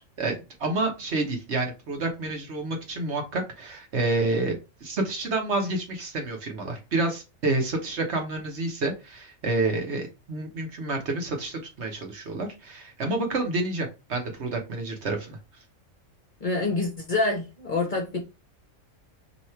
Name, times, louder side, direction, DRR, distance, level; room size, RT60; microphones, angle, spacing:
voice 1, 0.2-15.4, right 2 dB, 55° right, 1.2 m, -29 dB
voice 2, 16.4-18.2, left 3 dB, 45° left, 0.8 m, -26 dB
3.0 x 2.8 x 4.3 m
omnidirectional pair, 1.4 m